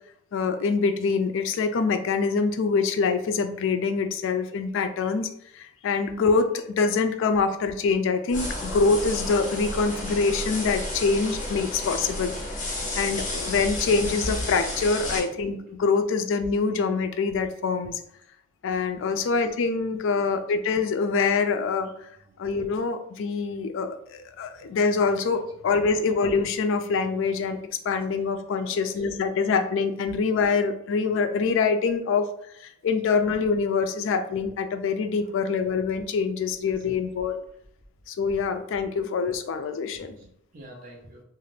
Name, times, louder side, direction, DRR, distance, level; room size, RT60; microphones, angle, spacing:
voice 1, 0.3-12.3 13.0-17.9 18.6-21.9 22.4-32.3 32.8-37.4 38.1-40.2, left 4 dB, 65° left, 9 dB, 0.3 m, -25 dB
sound 1, 8.3-15.2, left 1 dB, 40° left, 0.8 m, -32 dB
voice 2, 15.0-15.4 19.1-19.5 20.1-20.4 22.2-22.4 25.4-25.5 25.8-26.0 28.6-29.0 35.2-35.4 36.5-37.1 39.9-41.2, right 1 dB, 45° right, -1 dB, 0.6 m, -50 dB
2.5 x 2.4 x 3.2 m, 0.73 s
head